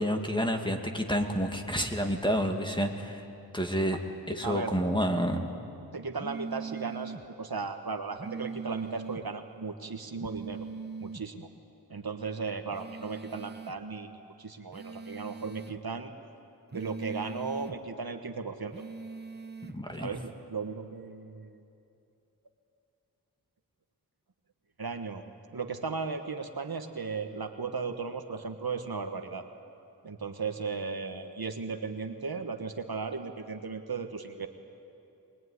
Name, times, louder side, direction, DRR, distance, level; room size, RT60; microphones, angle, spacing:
voice 1, 0.0-3.2 3.5-4.0 4.3-5.5 19.7-20.1, equal, 10° left, 3 dB, 2.2 m, -29 dB
voice 2, 4.4-4.8 5.9-10.7 11.0-11.5 11.9-14.1 14.4-16.1 16.7-18.7 20.0-21.6 24.8-25.2 25.5-29.5 30.0-34.5, right 4 dB, 65° right, 6 dB, 1.5 m, -36 dB
sound 1, 6.2-7.2 8.2-9.2 10.2-11.2 12.7-13.8 14.7-15.8 16.7-17.8 18.7-19.8, right 4 dB, 25° right, 0.9 m, -41 dB
22.5 x 20.5 x 9.7 m, 2.7 s
wide cardioid pair, 55°, 39 cm